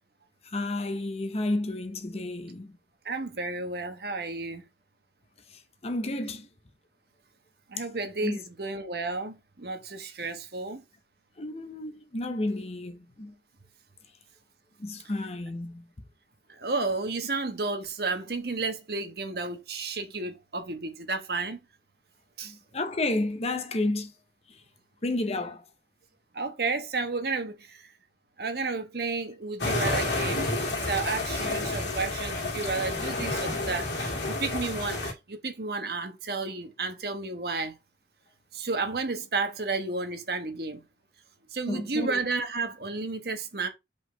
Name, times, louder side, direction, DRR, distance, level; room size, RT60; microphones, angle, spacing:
voice 1, 0.4-2.7 5.8-6.5 8.2-8.4 11.4-13.3 14.8-15.8 22.4-24.1 25.0-25.6 41.7-42.2, left 2 dB, 35° left, 0.7 m, -31 dB
voice 2, 3.0-4.6 7.7-10.8 16.5-21.6 22.4-22.5 26.3-27.8 28.4-30.6 30.8-37.7 38.5-40.8 41.5-43.7, right 3 dB, 60° right, 1.2 m, -32 dB
sound 1, 29.6-35.1, left 2 dB, 70° left, 2.4 m, -30 dB
5.4 x 4.0 x 5.0 m
head